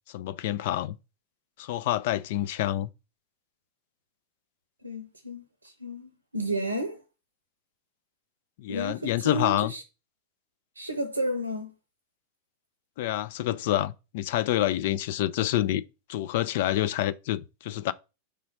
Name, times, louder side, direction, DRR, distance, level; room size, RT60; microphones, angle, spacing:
voice 1, 0.1-1.0 1.6-2.9 8.6-9.7 13.0-15.8 16.1-17.9, left 13 dB, 50° left, 0.4 m, -27 dB
voice 2, 4.8-7.0 8.7-9.8 10.8-11.7, right 1 dB, 85° right, 0.7 m, -32 dB
5.0 x 3.8 x 5.5 m
figure-of-eight pair, 90°, 0 cm